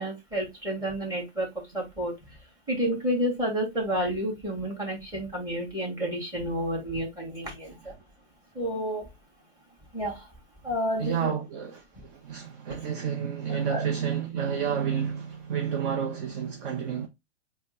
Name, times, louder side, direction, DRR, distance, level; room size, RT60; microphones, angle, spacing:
voice 1, 0.0-2.4 2.7-8.0 8.5-9.1 9.9-10.3 10.6-11.3 13.7-13.8, equal, 10° right, 1.9 m, -30 dB
voice 2, 11.0-17.1, right 7 dB, 45° right, 0.7 m, -30 dB
4.2 x 2.2 x 3.7 m
hypercardioid pair, 145°, 37 cm